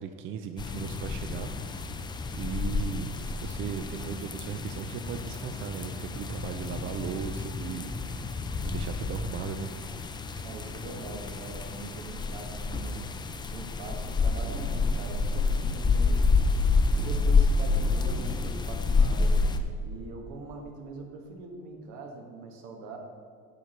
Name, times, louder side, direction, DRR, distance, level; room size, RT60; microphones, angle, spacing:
voice 1, 0.0-1.5 2.1-3.1 3.4-8.3 8.6-9.7 16.9-17.1, right 7 dB, 40° right, 8 dB, 0.5 m, -37 dB
sound 1, 0.6-19.6, left 4 dB, 15° left, 0.4 m, -28 dB
voice 2, 10.4-13.0 13.5-16.4 16.9-19.4 19.8-23.0, right 3 dB, 75° right, 2 dB, 1.7 m, -42 dB
9.8 x 4.5 x 6.5 m, 2.2 s
cardioid pair, 145°, 30 cm